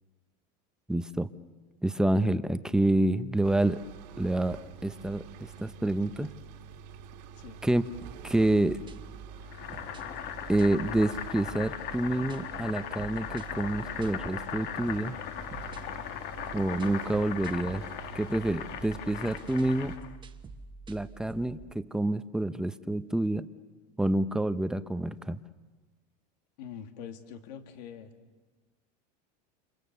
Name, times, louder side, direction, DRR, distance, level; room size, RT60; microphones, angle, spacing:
voice 1, 0.9-1.3 1.8-3.8 4.2-6.3 7.6-7.9 8.2-8.8 10.5-15.1 16.5-17.8 18.1-20.0 20.9-23.5 24.0-25.4, right 1 dB, 5° right, 12 dB, 0.8 m, -28 dB
sound 1, 3.4-20.0, right 8 dB, 75° right, 2.6 m, -47 dB
sound 2, 8.0-21.7, right 4 dB, 20° right, 1.4 m, -48 dB
Boiling, 9.5-20.2, left 10 dB, 50° left, 1.5 m, -39 dB
voice 2, 26.6-28.1, left 8 dB, 80° left, 6 dB, 2.5 m, -44 dB
29.5 x 26.0 x 6.9 m, 1.3 s
supercardioid pair, 125°, 21 cm